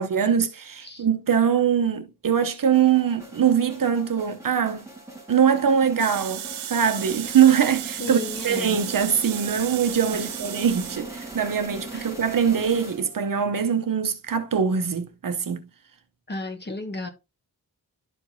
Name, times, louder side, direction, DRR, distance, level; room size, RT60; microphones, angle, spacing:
voice 1, 0.0-4.8 5.3-8.2 8.4-15.7, right 8 dB, 55° right, 0.9 m, -22 dB
sound 1, 2.7-13.4, right 2 dB, 10° right, 2.1 m, -40 dB
sound 2, 6.0-11.0, right 12 dB, 85° right, 0.5 m, -35 dB
voice 2, 8.0-8.8 10.1-10.3 11.9-12.1 16.3-17.1, left 1 dB, 25° left, 1.2 m, -34 dB
12.0 x 4.4 x 2.8 m
wide cardioid pair, 150°, 39 cm